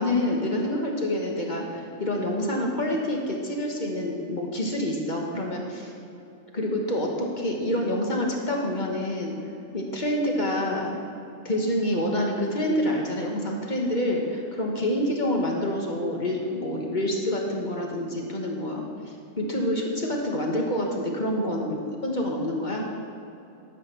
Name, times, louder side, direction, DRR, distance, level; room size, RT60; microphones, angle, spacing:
voice 1, 0.0-5.9 6.5-9.4 9.7-11.0 11.4-18.8 19.4-22.8, left 1 dB, 35° left, 0 dB, 1.5 m, -27 dB
11.5 x 6.1 x 7.2 m, 2.8 s
omnidirectional pair, 1.4 m